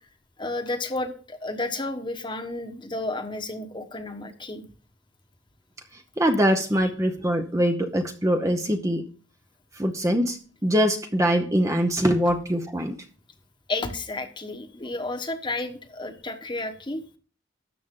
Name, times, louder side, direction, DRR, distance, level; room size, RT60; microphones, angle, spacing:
voice 1, 0.4-4.6 13.7-17.0, left 2 dB, 25° left, 7 dB, 1.2 m, -32 dB
voice 2, 6.2-9.0 9.8-13.0, equal, 15° right, 5 dB, 0.8 m, -23 dB
13.0 x 8.4 x 3.8 m, 0.40 s
head